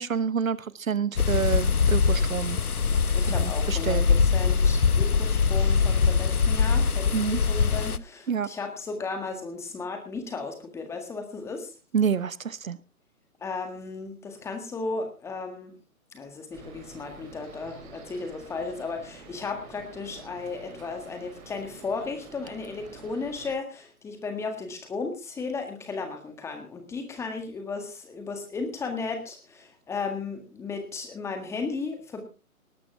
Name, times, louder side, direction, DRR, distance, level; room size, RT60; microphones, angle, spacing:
voice 1, 0.0-2.6 3.2-4.1 7.1-7.4 8.3-8.5 11.9-12.8, right 6 dB, 65° right, 18 dB, 1.0 m, -28 dB
sound 1, 1.2-8.0, left 5 dB, 80° left, 0.9 m, -23 dB
voice 2, 3.1-11.7 13.4-15.8 16.1-32.2, left 4 dB, 5° left, 6 dB, 1.7 m, -35 dB
sound 2, 16.5-23.5, right 4 dB, 25° right, 3.8 m, -48 dB
19.0 x 12.0 x 3.5 m, 0.32 s
figure-of-eight pair, 140°, 43 cm